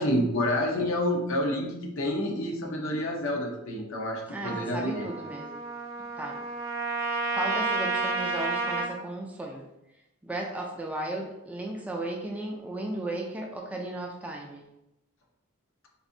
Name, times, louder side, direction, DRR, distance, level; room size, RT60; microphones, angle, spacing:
voice 1, 0.0-5.1, left 1 dB, 65° left, 0 dB, 0.7 m, -28 dB
voice 2, 4.3-5.6 6.2-6.4 7.3-9.7 10.2-14.7, right 1 dB, 5° right, 0 dB, 0.3 m, -35 dB
Trumpet, 4.4-8.9, right 3 dB, 65° right, 0.6 m, -31 dB
4.1 x 2.6 x 2.6 m, 0.89 s
head